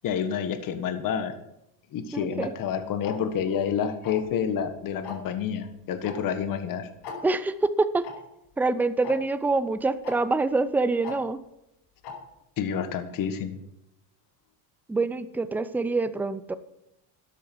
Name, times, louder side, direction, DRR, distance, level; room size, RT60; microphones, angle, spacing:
voice 1, 0.0-1.3 1.9-6.9 12.6-13.6, left 8 dB, 45° left, 9 dB, 1.6 m, -29 dB
voice 2, 2.1-2.5 7.2-8.1 8.6-11.4 14.9-16.5, right 3 dB, 5° right, 13 dB, 0.5 m, -25 dB
Tick-tock, 3.0-3.1 4.0-4.3 5.0-5.3 6.0-6.1 6.4-6.5 7.0-7.2 8.0-8.1 9.0-9.1 10.0-10.1 11.0-11.2 12.0-12.1, left 6 dB, 65° left, 4.8 m, -37 dB
13.5 x 10.5 x 4.6 m, 0.84 s
cardioid pair, 120°, 44 cm